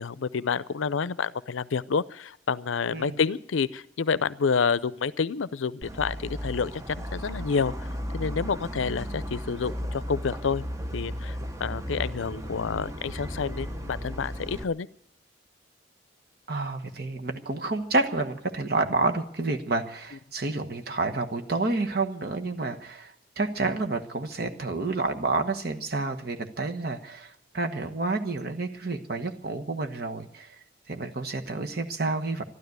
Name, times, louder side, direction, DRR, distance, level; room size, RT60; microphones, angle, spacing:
voice 1, 0.0-7.7 8.1-10.7 10.9-14.9, left 5 dB, 85° left, 19 dB, 0.5 m, -28 dB
sound 1, 5.8-14.6, equal, 15° right, 0.8 m, -35 dB
voice 2, 16.5-30.6 30.9-32.4, right 3 dB, 55° right, 6 dB, 1.2 m, -29 dB
12.5 x 12.5 x 9.4 m, 0.72 s
head